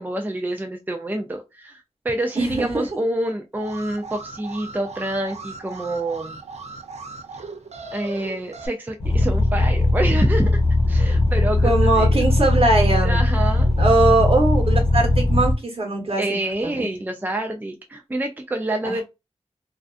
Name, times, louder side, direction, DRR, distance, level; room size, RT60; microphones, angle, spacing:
voice 1, 0.0-6.4 7.9-12.2 13.0-13.7 16.2-19.0, right 1 dB, 15° right, 3 dB, 0.4 m, -27 dB
voice 2, 2.4-2.8 11.6-13.2 13.8-16.2 16.6-16.9 18.8-19.0, right 2 dB, 60° right, 0 dB, 1.1 m, -21 dB
Alarm, 3.5-8.7, right 3 dB, 75° right, 0.4 m, -38 dB
sound 1, 9.0-15.5, left 2 dB, 70° left, 0.8 m, -19 dB
2.4 x 2.4 x 2.3 m, 0.25 s
wide cardioid pair, 90°, 11 cm